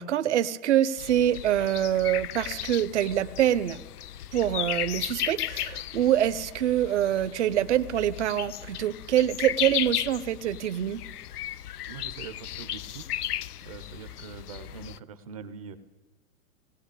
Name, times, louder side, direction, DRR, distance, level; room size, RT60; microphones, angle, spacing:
voice 1, 0.0-3.8 4.3-11.0, right 11 dB, 50° right, 13 dB, 0.9 m, -25 dB
sound 1, 1.0-15.0, left 12 dB, 85° left, 0.8 m, -35 dB
voice 2, 11.9-13.1 13.6-15.8, right 7 dB, 25° right, 11 dB, 0.7 m, -43 dB
19.0 x 18.0 x 8.3 m, 1.2 s
hypercardioid pair, 175°, 44 cm